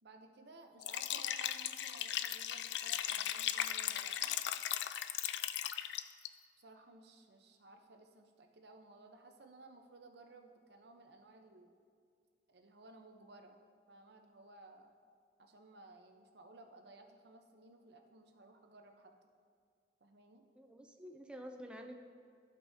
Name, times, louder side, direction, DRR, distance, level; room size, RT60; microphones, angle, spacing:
voice 1, 0.0-4.3 6.6-11.8 12.5-13.6 13.9-14.9 15.4-19.3 20.0-20.4, right 2 dB, 65° right, 4 dB, 0.8 m, -58 dB
Liquid, 0.8-6.3, left 11 dB, 70° left, 0.3 m, -37 dB
voice 2, 20.6-22.0, equal, 5° right, 3 dB, 0.4 m, -49 dB
15.0 x 5.4 x 2.7 m, 2.2 s
head